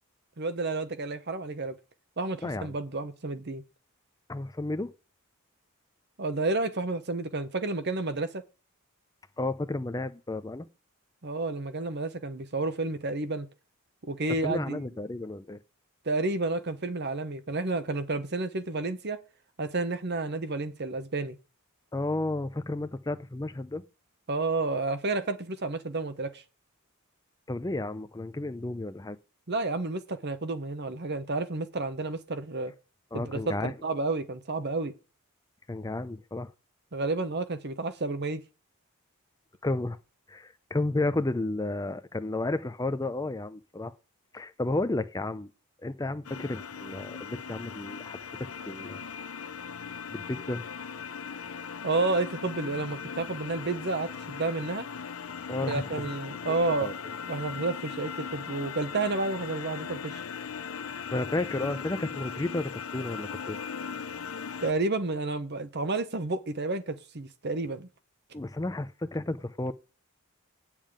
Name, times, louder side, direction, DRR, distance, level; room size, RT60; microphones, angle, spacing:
voice 1, 0.4-1.8 2.2-3.6 6.2-8.4 11.2-13.5 14.0-14.8 16.0-19.2 19.6-21.4 24.3-26.4 29.5-32.7 33.1-34.9 36.9-38.4 51.8-54.9 55.7-56.9 57.3-60.2 64.6-67.9, right 3 dB, 50° right, 1.0 m, -31 dB
voice 2, 2.4-2.7 4.3-4.9 9.4-10.7 14.4-15.6 21.9-23.8 27.5-29.2 33.1-33.7 35.7-36.5 39.6-40.0 40.3-43.9 44.3-45.5 45.8-49.1 50.1-50.6 55.5-55.9 56.5-56.9 61.1-63.6 68.3-69.7, left 2 dB, 15° left, 0.5 m, -32 dB
sound 1, 46.2-64.7, left 6 dB, 70° left, 0.6 m, -39 dB
9.2 x 7.3 x 5.0 m
head